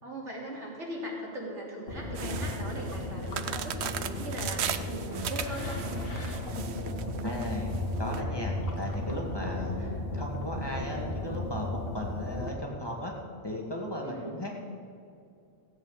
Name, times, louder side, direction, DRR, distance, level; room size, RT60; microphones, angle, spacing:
voice 1, 0.0-5.8 9.6-9.9 14.0-14.4, right 1 dB, 85° right, -4 dB, 3.7 m, -40 dB
sound 1, 1.9-12.5, left 1 dB, 55° left, 1.6 m, -35 dB
sound 2, 2.2-8.2, right 9 dB, 70° right, 0.9 m, -37 dB
voice 2, 7.2-7.7 8.0-13.1 13.4-14.5, left 1 dB, 20° left, -2 dB, 2.0 m, -36 dB
15.5 x 8.1 x 7.3 m, 2.5 s
omnidirectional pair, 1.2 m